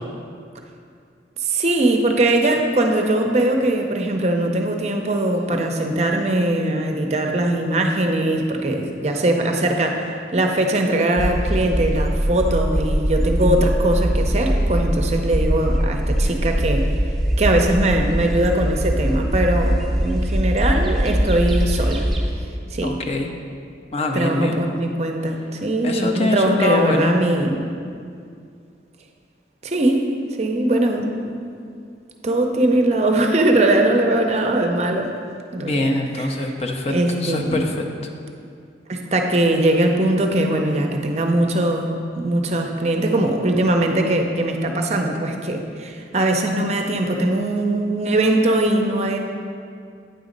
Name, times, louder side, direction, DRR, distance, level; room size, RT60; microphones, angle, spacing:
voice 1, 1.4-16.9 17.4-22.1 22.7-23.0 24.1-27.7 29.6-30.1 30.4-31.1 32.2-35.1 35.5-35.9 36.9-37.6 38.9-49.2, right 1 dB, 35° right, 3 dB, 0.5 m, -20 dB
sound 1, 11.2-22.3, equal, ahead, 0.7 m, -21 dB
voice 2, 22.8-23.3 23.9-24.6 25.8-27.1 35.6-38.1, left 2 dB, 35° left, 2 dB, 0.5 m, -23 dB
9.0 x 4.0 x 5.1 m, 2.4 s
head